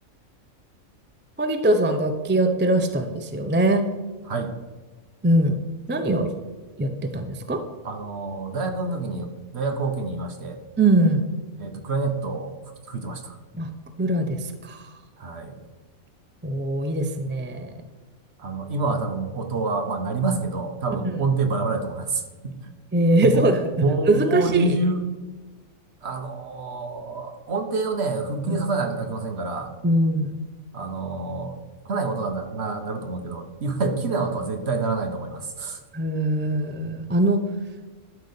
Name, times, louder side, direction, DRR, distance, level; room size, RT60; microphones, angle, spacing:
voice 1, 1.4-3.9 5.2-5.6 5.9-6.3 6.8-7.6 10.8-11.3 13.5-13.7 14.0-14.9 16.4-17.7 21.1-21.2 22.9-23.7 24.1-24.7 28.5-28.6 29.8-30.4 35.9-37.4, right 1 dB, 15° right, 6 dB, 0.4 m, -22 dB
voice 2, 7.8-10.6 11.6-12.5 12.9-13.4 15.2-15.6 18.4-22.6 23.2-23.5 23.8-25.0 26.0-29.7 30.7-31.5 31.9-35.8, right 3 dB, 50° right, 5 dB, 1.2 m, -27 dB
12.0 x 4.1 x 6.7 m, 1.3 s
omnidirectional pair, 1.5 m